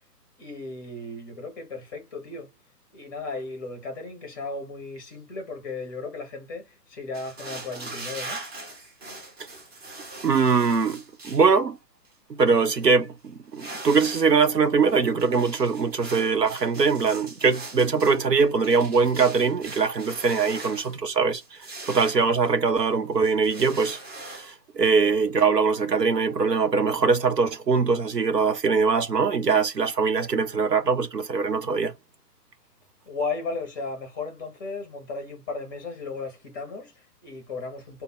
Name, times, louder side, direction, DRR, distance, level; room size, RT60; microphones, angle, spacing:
voice 1, 0.4-2.6 2.9-8.4 33.0-38.0, left 3 dB, 15° left, 0.6 m, -35 dB
sound 1, 7.1-11.5 12.0-12.1 12.5-12.9 13.4-14.3 14.6-21.0 21.4-22.9 23.2-24.5, right 2 dB, 40° right, 1.7 m, -41 dB
voice 2, 10.2-11.8 12.3-21.4 21.8-31.9, right 5 dB, 85° right, 0.8 m, -22 dB
3.3 x 2.2 x 4.0 m
figure-of-eight pair, 135°, 47 cm